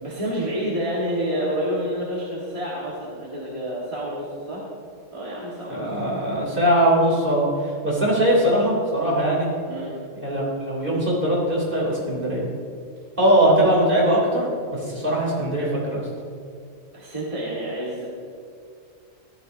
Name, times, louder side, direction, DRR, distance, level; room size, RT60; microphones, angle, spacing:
voice 1, 0.0-4.6 5.1-5.9 9.7-9.9 16.9-18.1, equal, 25° right, -7 dB, 1.7 m, -28 dB
voice 2, 5.7-9.5 10.1-12.4 13.2-16.0, right 1 dB, 40° right, -5 dB, 3.3 m, -21 dB
14.5 x 12.5 x 2.7 m, 2.3 s
omnidirectional pair, 1.3 m